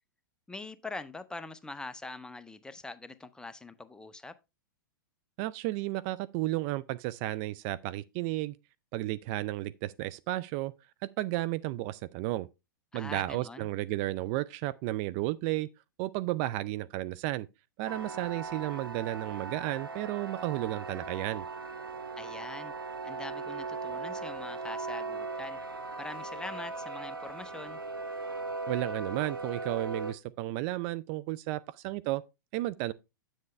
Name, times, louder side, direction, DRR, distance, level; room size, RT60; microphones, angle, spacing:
voice 1, 0.5-4.4 12.9-13.7 22.2-22.7 23.0-25.6 26.0-27.8, left 3 dB, 5° left, 0.6 m, -43 dB
voice 2, 5.4-8.5 8.9-10.7 11.0-12.5 12.9-15.7 16.0-17.5 17.8-21.5 28.7-32.2 32.5-32.9, right 16 dB, 40° right, 0.4 m, -33 dB
sound 1, 17.9-30.1, right 3 dB, 90° right, 0.8 m, -38 dB
7.7 x 7.4 x 3.2 m
figure-of-eight pair, 100°, 11 cm